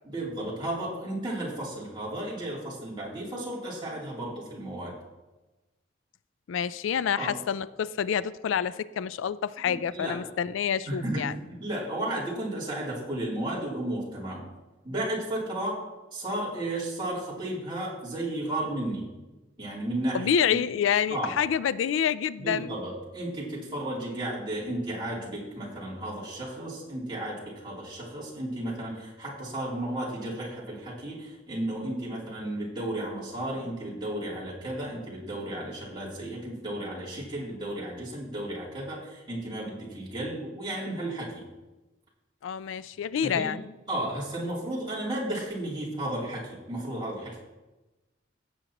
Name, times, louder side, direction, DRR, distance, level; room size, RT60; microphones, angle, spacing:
voice 1, 0.0-4.9 7.1-7.3 9.6-10.2 10.8-14.4 14.8-15.8 16.1-19.0 19.6-20.6 21.1-21.3 22.4-41.4 43.2-43.5 43.9-47.4, right 1 dB, 25° right, -6 dB, 3.1 m, -33 dB
voice 2, 6.5-11.3 20.1-22.7 42.4-43.6, left 8 dB, 90° left, 17 dB, 0.4 m, -27 dB
16.0 x 7.7 x 3.0 m, 1.1 s
head